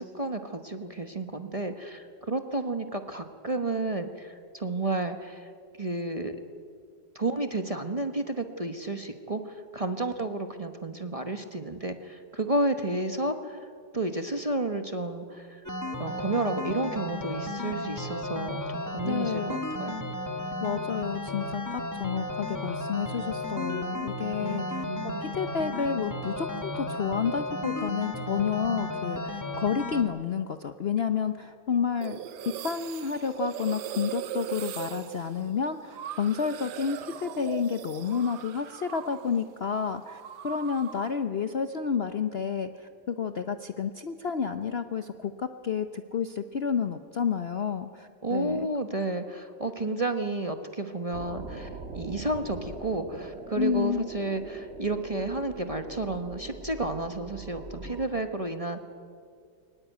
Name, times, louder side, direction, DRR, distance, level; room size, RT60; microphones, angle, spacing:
voice 1, 0.0-5.5 5.8-6.4 7.1-13.7 13.9-15.6 16.0-20.0 24.4-25.2 48.2-51.7 51.9-58.8, right 2 dB, 25° right, 7 dB, 1.0 m, -31 dB
sound 1, 15.7-30.0, left 1 dB, 10° left, 1.5 m, -34 dB
voice 2, 19.0-19.6 20.6-24.8 25.2-32.2 32.5-48.7 53.6-54.1, left 6 dB, 50° left, 9 dB, 0.8 m, -30 dB
sound 2, 32.0-39.4 39.7-41.2, right 11 dB, 80° right, 1.4 m, -39 dB
sound 3, 51.1-58.0, right 3 dB, 40° right, 1.9 m, -42 dB
23.0 x 19.0 x 9.2 m, 2.3 s
omnidirectional pair, 1.8 m